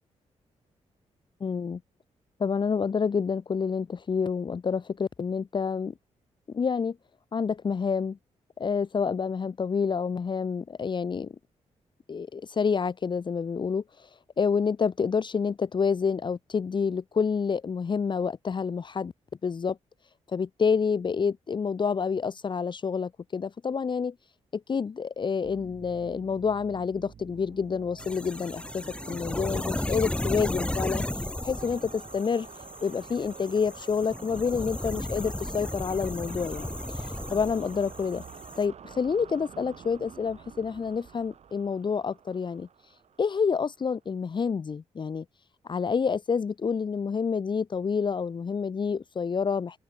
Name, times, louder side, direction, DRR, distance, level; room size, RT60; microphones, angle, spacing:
voice 1, 1.4-1.8 2.4-5.9 6.5-7.0 7.3-8.2 8.6-11.3 12.1-19.1 19.4-19.8 20.3-24.1 24.5-32.5 32.8-38.2 38.6-42.7 43.2-45.2 45.6-49.8, left 5 dB, 40° left, 1.2 m, -28 dB
sound 1, 25.4-43.9, right 7 dB, 60° right, 5.8 m, -48 dB
sound 2, 28.0-38.6, left 1 dB, 10° left, 2.7 m, -34 dB
open air
cardioid pair, 105°, 12 cm